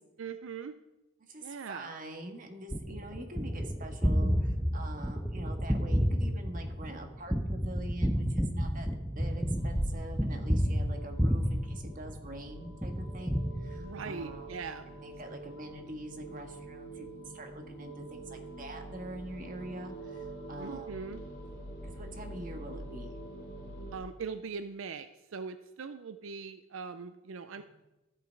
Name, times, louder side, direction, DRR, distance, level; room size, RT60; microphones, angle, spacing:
voice 1, 0.2-0.7 1.4-1.9 13.8-14.9 20.6-21.2 23.9-27.6, right 5 dB, 80° right, 11 dB, 0.5 m, -41 dB
voice 2, 1.3-8.9 9.1-14.5 14.9-21.0 21.8-23.2 27.5-27.6, right 1 dB, 40° right, 3 dB, 1.6 m, -44 dB
Gunshot gunfire, 2.7-12.4 12.8-14.2, equal, 5° right, 0.7 m, -30 dB
sound 1, 9.2-23.9, right 1 dB, 45° left, 2.7 m, -45 dB
14.0 x 7.9 x 4.6 m, 1.0 s
head